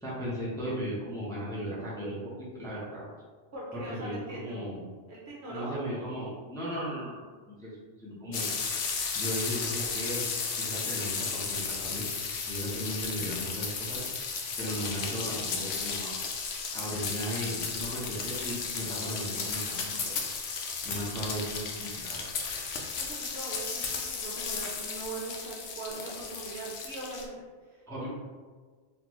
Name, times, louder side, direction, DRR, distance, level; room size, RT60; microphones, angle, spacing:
voice 1, 0.0-3.0 3.7-4.8 5.5-7.2 7.5-8.5 9.1-10.3 10.6-12.1 12.5-14.0 14.6-16.1 16.7-20.1 20.8-22.2 27.9-28.1, equal, 5° left, -8 dB, 0.8 m, -36 dB
voice 2, 3.5-4.7 5.1-5.9 23.2-27.3 27.7-27.8, right 2 dB, 60° right, -5 dB, 1.1 m, -40 dB
sound 1, 8.3-27.2, left 5 dB, 75° left, 0.9 m, -34 dB
4.0 x 2.6 x 3.0 m, 1.5 s
omnidirectional pair, 1.3 m